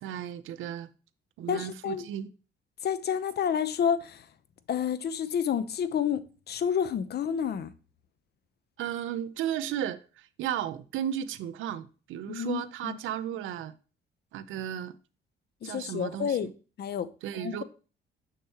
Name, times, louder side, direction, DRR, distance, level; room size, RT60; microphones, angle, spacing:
voice 1, 0.0-0.9 1.4-2.3 8.8-13.7 14.3-14.9 15.6-16.5 17.2-17.6, right 10 dB, 85° right, 0.6 m, -34 dB
voice 2, 1.5-2.0 2.8-4.3 4.7-6.2 6.5-7.7 12.3-13.0 15.6-16.5 16.8-17.1 17.4-17.6, left 8 dB, 55° left, 0.8 m, -29 dB
6.7 x 6.4 x 2.9 m
cardioid pair, 90°, 20 cm